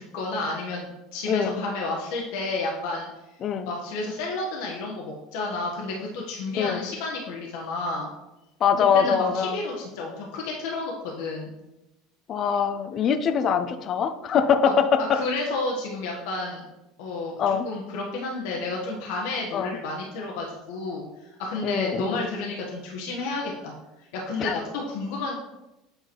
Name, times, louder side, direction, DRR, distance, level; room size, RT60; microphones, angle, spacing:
voice 1, 0.0-3.1 3.7-8.1 8.9-11.5 14.6-14.7 15.1-16.6 17.0-23.7 24.1-25.3, left 2 dB, 65° left, -1 dB, 1.3 m, -31 dB
voice 2, 1.3-1.6 3.4-3.7 6.6-6.8 8.6-9.6 12.3-15.2 17.4-17.7 19.5-19.8 21.6-22.2 24.4-24.6, left 7 dB, 45° left, 8 dB, 0.7 m, -23 dB
8.1 x 3.8 x 4.5 m, 0.97 s
hypercardioid pair, 75°, 0 cm